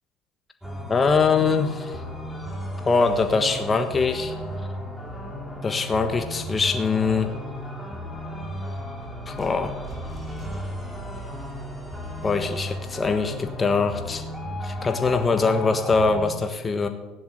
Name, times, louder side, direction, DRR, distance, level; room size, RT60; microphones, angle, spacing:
sound 1, 0.6-16.3, equal, ahead, 5.0 m, -35 dB
voice 1, 0.9-2.0 2.8-4.3 5.6-7.3 9.3-9.7 12.2-14.2 14.6-16.9, left 4 dB, 25° left, 6 dB, 1.5 m, -23 dB
sound 2, 8.8-13.6, right 3 dB, 20° right, 5.3 m, -44 dB
16.0 x 10.5 x 8.0 m, 1.2 s
supercardioid pair, 90°, 0 cm